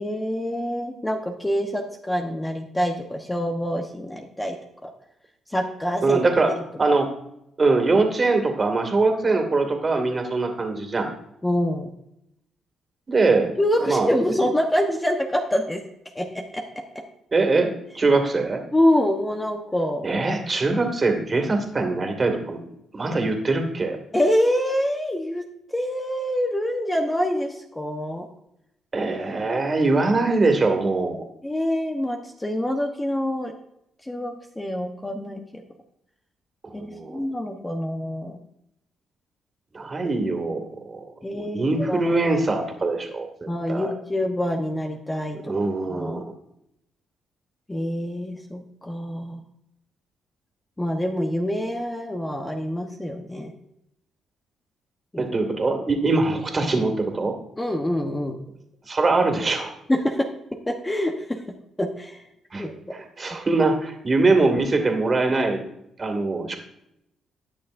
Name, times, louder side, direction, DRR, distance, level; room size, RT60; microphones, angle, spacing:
voice 1, 0.0-4.6 4.8-4.9 5.5-6.2 11.4-11.9 13.6-15.8 16.1-16.3 16.5-16.6 18.7-20.1 24.1-25.4 25.7-28.3 31.4-33.5 34.0-35.6 36.7-38.4 41.2-42.1 43.5-45.5 45.9-46.2 47.7-49.4 50.8-53.5 55.1-55.3 57.6-58.4 59.9-60.3 60.7-61.4 61.8-62.2 62.6-62.7, left 1 dB, 15° left, 3 dB, 1.0 m, -26 dB
voice 2, 6.0-6.5 6.8-7.1 7.6-11.1 13.1-13.5 13.8-14.1 17.3-18.6 20.0-22.6 22.9-24.0 28.9-31.2 36.6-37.2 39.7-41.0 41.3-43.9 45.4-46.3 55.2-57.3 58.9-59.7 62.5-62.6 62.9-65.6 66.0-66.6, right 3 dB, 30° right, 4 dB, 2.3 m, -22 dB
19.5 x 6.7 x 2.6 m, 0.81 s
cardioid pair, 90°, 0 cm